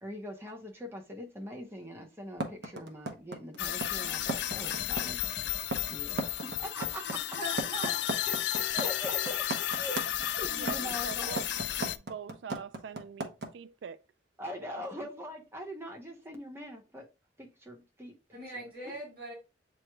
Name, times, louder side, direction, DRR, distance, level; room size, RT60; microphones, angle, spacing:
voice 1, 0.0-5.2 5.9-7.2 8.7-9.4 9.7-11.4 14.4-17.1 17.4-18.4, equal, 15° right, 0.8 m, -42 dB
sound 1, 2.4-13.5, right 2 dB, 60° right, 0.8 m, -35 dB
sound 2, 3.6-12.0, left 12 dB, 70° left, 0.3 m, -33 dB
voice 2, 7.3-8.0 10.7-10.9 18.3-19.3, equal, 30° right, 2.9 m, -40 dB
voice 3, 10.5-11.5 12.0-14.0 15.0-15.1, right 6 dB, 80° right, 0.3 m, -43 dB
7.8 x 3.0 x 2.2 m
head